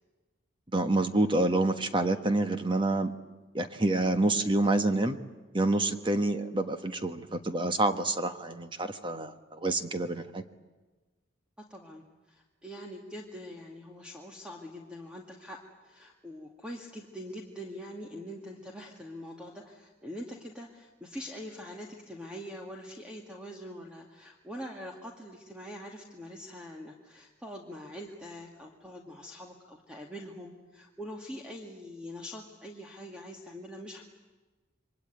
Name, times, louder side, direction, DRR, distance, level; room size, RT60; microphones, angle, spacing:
voice 1, 0.7-3.1 3.5-5.2 5.5-10.4, right 2 dB, 25° right, 8 dB, 1.4 m, -27 dB
voice 2, 11.6-34.0, equal, 5° right, 0 dB, 2.2 m, -44 dB
27.5 x 23.5 x 9.3 m, 1.2 s
head